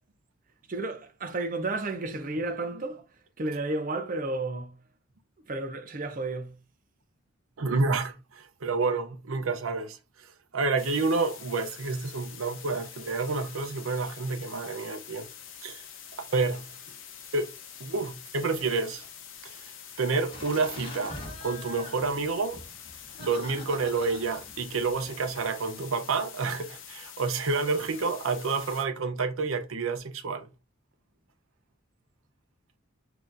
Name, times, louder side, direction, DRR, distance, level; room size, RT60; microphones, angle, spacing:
voice 1, 0.7-3.0 3.4-4.7 5.5-6.6, right 2 dB, 40° right, 0.6 m, -32 dB
voice 2, 7.6-10.3 10.5-15.3 15.6-15.8 16.2-16.7 17.3-17.5 17.8-19.1 19.4-19.7 20.0-22.6 23.2-30.5, right 4 dB, 80° right, 0.6 m, -29 dB
sound 1, 10.8-28.8, left 8 dB, 70° left, 0.7 m, -46 dB
Laughter, 20.3-25.5, left 2 dB, 25° left, 1.3 m, -45 dB
5.9 x 2.8 x 2.5 m
head